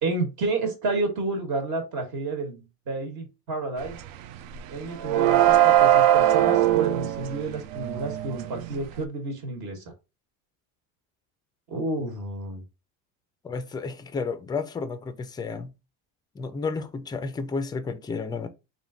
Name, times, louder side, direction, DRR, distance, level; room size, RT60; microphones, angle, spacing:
voice 1, 0.0-4.0 4.7-9.8 11.7-12.6, right 3 dB, 55° right, 1.4 m, -30 dB
sound 1, 3.8-4.1 4.4-9.0, right 12 dB, 70° right, 0.5 m, -21 dB
voice 2, 13.4-15.7 16.4-18.5, left 4 dB, 10° left, 0.3 m, -32 dB
3.5 x 2.5 x 3.7 m
cardioid pair, 140°, 36 cm